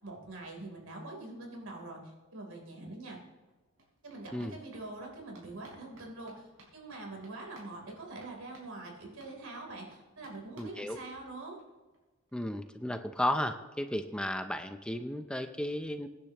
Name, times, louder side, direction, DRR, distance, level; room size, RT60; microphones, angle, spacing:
voice 1, 0.0-3.2 4.0-6.5 6.7-11.6, right 2 dB, 85° right, 0 dB, 3.5 m, -44 dB
sound 1, 2.8-2.9 3.2-11.6 11.9-12.0 12.3-12.4 12.6-12.7, right 1 dB, 70° right, 4.7 m, -61 dB
voice 2, 10.6-11.0 12.3-16.1, left 1 dB, 5° left, 7 dB, 0.5 m, -34 dB
23.5 x 10.5 x 3.0 m, 1.2 s
head